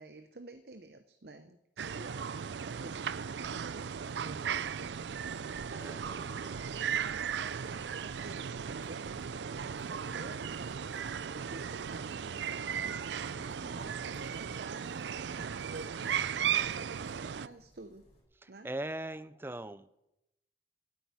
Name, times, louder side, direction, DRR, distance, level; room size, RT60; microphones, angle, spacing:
voice 1, 0.0-13.0 13.3-18.0 18.5-18.7, right 3 dB, 65° right, 9 dB, 0.8 m, -51 dB
sound 1, 1.8-17.5, right 7 dB, 90° right, 0.5 m, -36 dB
sound 2, 2.6-18.2, equal, 35° left, 4.8 m, -61 dB
voice 2, 5.7-6.7 13.4-13.9 18.4-19.9, right 1 dB, 15° right, 15 dB, 0.5 m, -42 dB
14.0 x 8.6 x 9.5 m, 0.90 s
head